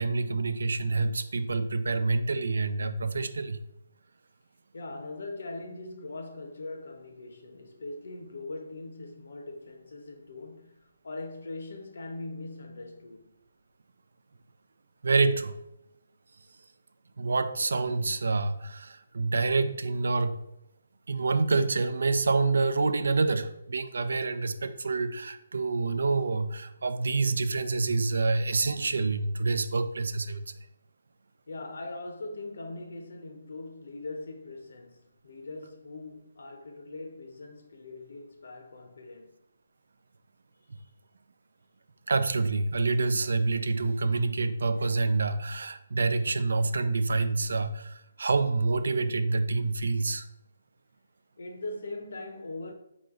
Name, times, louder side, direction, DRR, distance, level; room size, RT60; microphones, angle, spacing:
voice 1, 0.0-3.6 15.0-15.6 17.2-20.4 21.1-30.4 42.1-50.3, right 3 dB, 75° right, 0.4 m, -27 dB
voice 2, 4.7-13.3 31.5-39.3 40.7-40.9 51.4-52.7, left 2 dB, 70° left, 0.8 m, -41 dB
3.8 x 3.1 x 3.7 m
hypercardioid pair, 160°, 0 cm